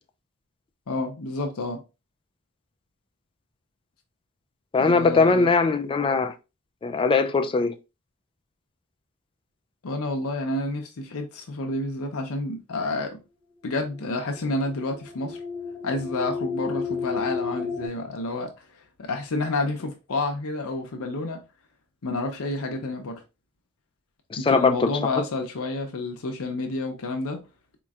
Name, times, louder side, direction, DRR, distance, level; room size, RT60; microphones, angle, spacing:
voice 1, 0.9-1.8 4.8-5.5 9.8-13.2 13.6-15.4 15.8-18.5 19.0-21.4 22.0-23.2 24.4-27.4, left 2 dB, 65° left, 0.7 m, -29 dB
voice 2, 4.7-6.3 6.8-7.8 24.3-25.0, left 4 dB, 25° left, 0.3 m, -21 dB
sound 1, 13.9-17.9, left 5 dB, 20° right, 1.6 m, -32 dB
4.2 x 3.0 x 2.4 m
head